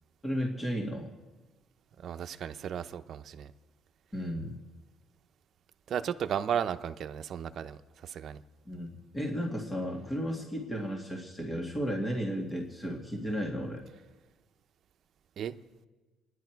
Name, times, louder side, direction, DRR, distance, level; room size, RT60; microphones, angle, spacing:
voice 1, 0.2-1.1 4.1-4.6 8.7-13.8, equal, 15° left, 2.2 m, -34 dB
voice 2, 2.0-3.5 5.9-8.4 15.4-15.6, right 8 dB, 55° right, 0.7 m, -34 dB
27.5 x 10.5 x 4.7 m
cardioid pair, 125°, 0 cm